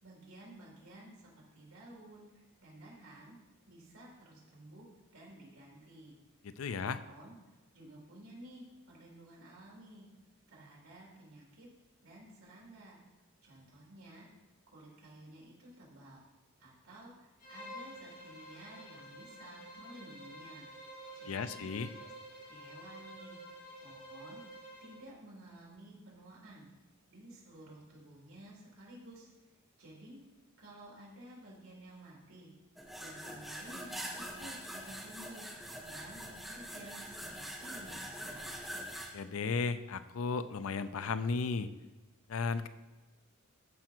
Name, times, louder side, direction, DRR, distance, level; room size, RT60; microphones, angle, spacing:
voice 1, 0.0-3.4 3.7-4.9 5.1-6.2 6.8-7.4 7.7-10.1 10.5-11.7 12.0-13.0 13.4-14.3 14.7-16.2 16.6-20.7 21.1-21.7 22.0-22.1 22.5-23.4 23.8-24.4 24.8-26.7 27.1-29.3 29.8-30.2 30.6-32.5 33.0-35.5 35.9-38.5, right 1 dB, 80° right, -4 dB, 3.4 m, -53 dB
voice 2, 6.4-7.0 21.3-21.9 39.1-41.7 42.3-42.7, left 4 dB, 75° left, 13 dB, 0.5 m, -35 dB
Bowed string instrument, 17.4-25.1, equal, 40° left, 2.0 m, -50 dB
sound 1, 32.8-39.1, equal, ahead, 1.4 m, -44 dB
13.5 x 4.9 x 4.5 m, 1.2 s
head